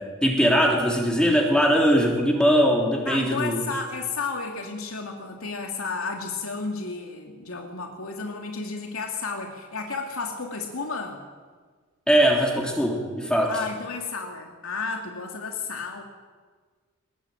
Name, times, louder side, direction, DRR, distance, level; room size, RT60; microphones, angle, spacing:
voice 1, 0.0-3.6 12.1-13.5, equal, 5° left, 0 dB, 3.2 m, -21 dB
voice 2, 3.1-11.2 13.5-16.0, left 4 dB, 80° left, 2 dB, 2.7 m, -32 dB
21.5 x 21.0 x 9.1 m, 1.5 s
head